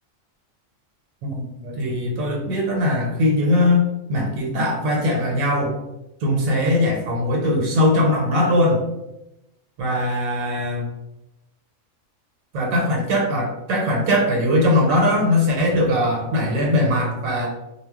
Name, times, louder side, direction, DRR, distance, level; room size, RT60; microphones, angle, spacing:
voice 1, 1.3-3.8 4.1-5.7 6.2-8.8 9.8-10.9 12.5-17.5, left 1 dB, 85° right, -1 dB, 1.1 m, -20 dB
2.3 x 2.0 x 3.4 m, 0.94 s
omnidirectional pair, 1.4 m